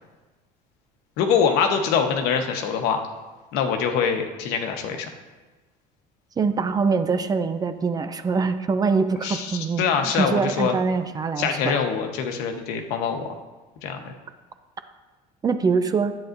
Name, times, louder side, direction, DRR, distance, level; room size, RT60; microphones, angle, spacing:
voice 1, 1.2-3.0 3.5-5.1 9.2-10.8 11.4-13.3 13.8-14.1, left 6 dB, 80° left, 5 dB, 1.1 m, -24 dB
voice 2, 6.4-11.8 15.4-16.1, right 5 dB, 25° right, 10 dB, 0.5 m, -24 dB
10.5 x 8.6 x 2.6 m, 1.2 s
cardioid pair, 130°, 16 cm